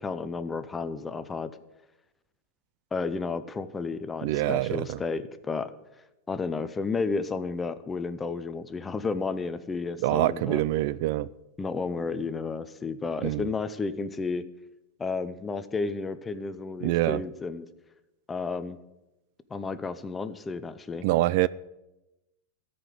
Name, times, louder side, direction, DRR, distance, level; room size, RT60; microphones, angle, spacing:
voice 1, 0.0-1.5 2.9-5.7 6.3-10.6 11.6-14.4 15.0-17.7 18.3-18.8 19.5-21.1, left 4 dB, 15° left, 0.6 m, -32 dB
voice 2, 4.2-5.0 10.0-11.3 13.2-13.5 16.8-17.2 21.0-21.5, right 16 dB, 60° right, 0.3 m, -25 dB
13.5 x 5.2 x 9.3 m
supercardioid pair, 150°, 0 cm